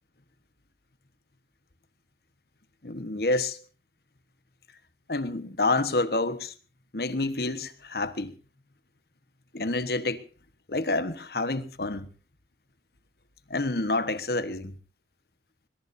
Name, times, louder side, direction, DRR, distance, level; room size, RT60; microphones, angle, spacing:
voice 1, 2.8-3.6 5.1-6.5 6.9-8.3 9.5-10.2 10.7-12.1 13.5-14.8, left 2 dB, 60° left, 1.3 m, -28 dB
22.0 x 21.0 x 2.7 m
head